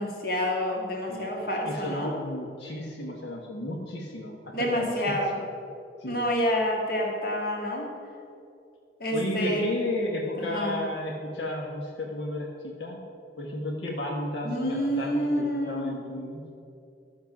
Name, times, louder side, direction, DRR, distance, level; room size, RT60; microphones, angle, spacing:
voice 1, 0.0-2.1 4.5-5.4 6.1-7.9 9.0-9.6 10.4-10.8 14.4-16.0, equal, 55° left, -1 dB, 1.9 m, -28 dB
voice 2, 1.6-5.2 6.0-6.2 9.1-13.0 13.4-16.4, left 1 dB, 90° left, -1 dB, 1.2 m, -33 dB
12.0 x 6.8 x 5.9 m, 2.5 s
head